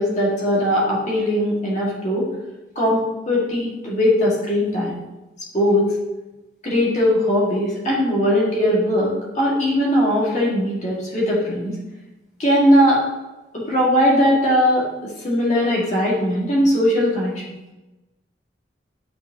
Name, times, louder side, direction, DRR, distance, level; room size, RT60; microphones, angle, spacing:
voice 1, 0.0-2.3 2.8-5.0 5.5-5.9 6.6-11.8 12.4-13.0 13.5-17.6, equal, 40° left, -5 dB, 1.8 m, -19 dB
8.4 x 4.4 x 2.8 m, 1.1 s
head